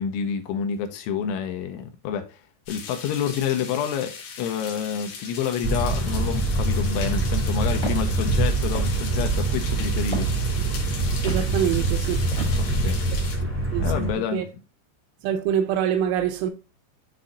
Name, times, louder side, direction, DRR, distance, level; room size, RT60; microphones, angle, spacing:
voice 1, 0.0-2.4 2.7-10.3 12.5-13.0 13.4-13.5 13.8-14.4, left 8 dB, 80° left, 3.2 m, -28 dB
sound 1, 2.7-13.4, left 5 dB, 60° left, 2.1 m, -38 dB
sound 2, 5.6-14.1, right 2 dB, 15° right, 1.1 m, -24 dB
Walk footsteps, 7.8-8.1 8.7-9.1 10.1-10.4 11.2-11.5 12.3-12.8, equal, 40° left, 0.6 m, -32 dB
voice 2, 11.2-12.2 13.7-14.5 15.2-16.5, right 9 dB, 80° right, 3.2 m, -25 dB
11.0 x 4.1 x 2.4 m
omnidirectional pair, 5.7 m